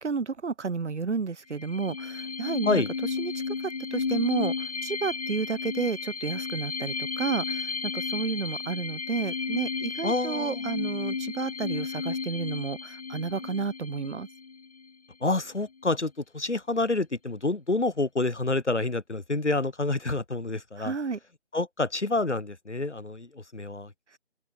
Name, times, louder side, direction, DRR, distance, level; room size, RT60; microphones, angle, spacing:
voice 1, 0.0-2.8 3.2-14.3 20.8-21.2, right 5 dB, 85° right, 0.8 m, -31 dB
sound 1, 1.5-14.9, left 4 dB, 35° left, 1.0 m, -33 dB
voice 2, 10.0-10.6 15.2-20.9 21.5-23.9, left 2 dB, 80° left, 2.3 m, -28 dB
open air
figure-of-eight pair, 155°, 34 cm